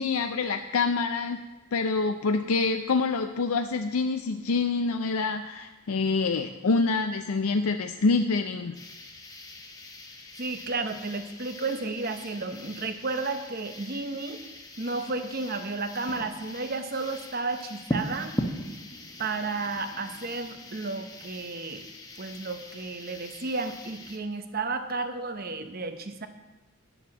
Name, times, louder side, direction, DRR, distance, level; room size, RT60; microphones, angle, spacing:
voice 1, 0.0-1.4 1.7-8.7, left 4 dB, 75° left, 6 dB, 0.5 m, -26 dB
sound 1, 8.7-24.2, left 1 dB, 15° left, 0.9 m, -40 dB
voice 2, 10.4-14.4 14.8-18.4 19.2-21.9 22.2-26.3, right 3 dB, 40° right, 8 dB, 0.8 m, -32 dB
10.5 x 7.0 x 7.1 m, 1.1 s
head